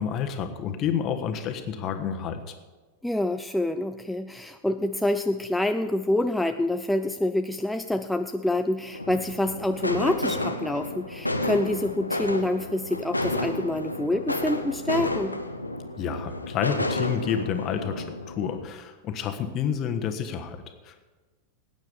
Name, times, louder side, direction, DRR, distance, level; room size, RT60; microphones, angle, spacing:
voice 1, 0.0-2.4 16.0-21.1, left 8 dB, 35° left, 7 dB, 1.4 m, -29 dB
voice 2, 3.0-15.3, left 1 dB, 5° left, 7 dB, 0.4 m, -27 dB
sound 1, 8.9-18.6, left 1 dB, 85° left, 1.0 m, -31 dB
18.5 x 9.2 x 5.2 m, 1.3 s
figure-of-eight pair, 90°, 0 cm